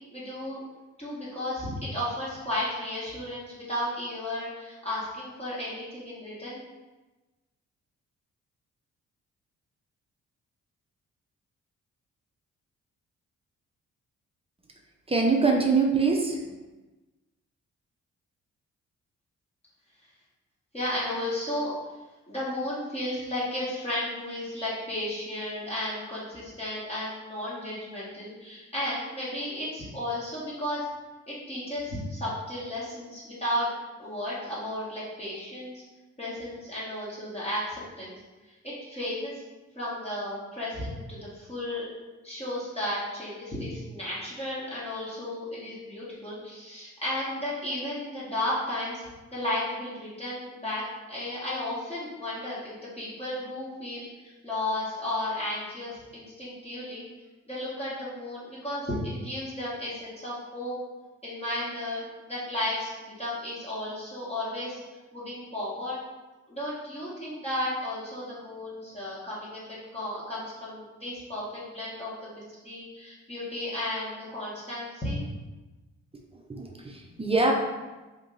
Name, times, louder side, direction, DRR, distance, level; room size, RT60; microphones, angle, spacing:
voice 1, 0.1-0.6 1.0-6.6 20.7-21.7 22.3-30.8 31.3-33.7 34.0-35.8 36.2-38.2 38.6-39.4 39.7-41.9 42.2-49.0 49.3-50.8 51.1-57.0 57.5-60.8 61.2-64.8 65.1-66.0 66.5-75.2, left 1 dB, 20° left, -9 dB, 1.3 m, -34 dB
voice 2, 15.1-16.4 76.5-77.5, right 4 dB, 20° right, 0 dB, 0.6 m, -24 dB
2.9 x 2.6 x 3.8 m, 1.2 s
supercardioid pair, 55°, 31 cm